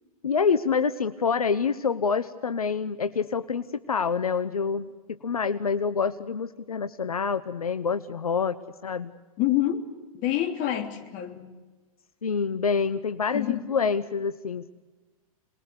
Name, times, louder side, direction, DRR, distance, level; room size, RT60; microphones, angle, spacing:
voice 1, 0.2-9.1 12.2-14.7, left 5 dB, 85° left, 1.0 m, -27 dB
voice 2, 9.4-9.9 10.1-11.5 13.3-13.7, left 12 dB, 40° left, 3.3 m, -27 dB
28.0 x 21.0 x 6.8 m
hypercardioid pair, 105°, 18 cm